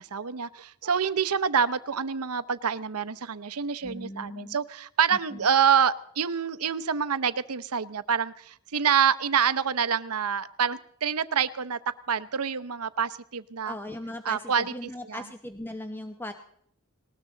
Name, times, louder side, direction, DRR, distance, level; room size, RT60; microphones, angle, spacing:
voice 1, 0.0-11.8 12.1-13.7 14.2-14.7 15.1-15.2, right 7 dB, 85° right, 15 dB, 0.8 m, -26 dB
voice 2, 3.8-4.6 5.3-5.5 13.6-16.3, left 1 dB, 10° left, 7 dB, 0.8 m, -38 dB
19.5 x 19.0 x 3.9 m, 0.64 s
head